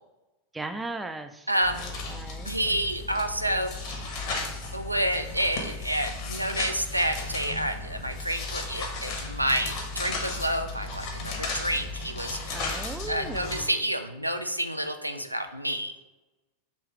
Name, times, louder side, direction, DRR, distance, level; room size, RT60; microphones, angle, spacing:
voice 1, 0.5-1.5 1.8-2.5 12.5-13.7, right 2 dB, 10° right, 8 dB, 0.3 m, -37 dB
voice 2, 1.5-1.8 2.5-3.8 4.7-15.9, right 1 dB, 90° right, 6 dB, 0.3 m, -29 dB
sound 1, 1.6-13.6, left 3 dB, 45° left, 1.0 m, -35 dB
3.1 x 3.1 x 4.7 m, 1.1 s
figure-of-eight pair, 90°, 0 cm